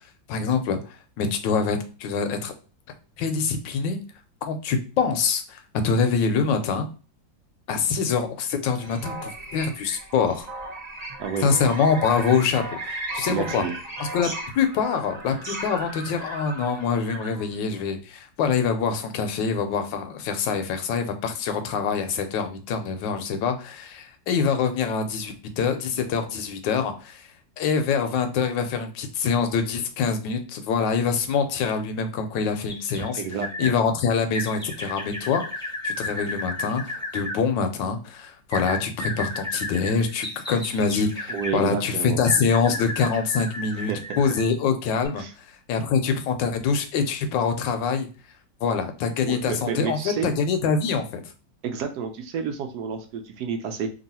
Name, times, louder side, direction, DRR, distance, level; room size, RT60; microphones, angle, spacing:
voice 1, 0.3-0.8 1.2-2.5 3.2-4.0 4.5-6.9 7.7-10.5 11.4-13.7 14.0-14.3 14.5-27.3 27.6-33.2 33.6-35.4 35.8-45.2 45.7-48.1 48.6-51.2, left 5 dB, 80° left, 7 dB, 1.3 m, -25 dB
sound 1, 8.8-17.5, right 2 dB, 30° right, 0.8 m, -36 dB
voice 2, 11.2-11.8 13.3-13.8 33.2-33.8 41.3-42.2 43.7-44.2 45.1-45.3 49.2-50.3 51.6-53.9, right 6 dB, 70° right, 5 dB, 1.1 m, -30 dB
sound 2, 32.7-33.7 34.3-37.4 38.5-41.6 42.3-44.5 45.0-45.1, left 2 dB, 5° left, 0.6 m, -33 dB
3.0 x 2.8 x 4.1 m, 0.36 s
omnidirectional pair, 2.0 m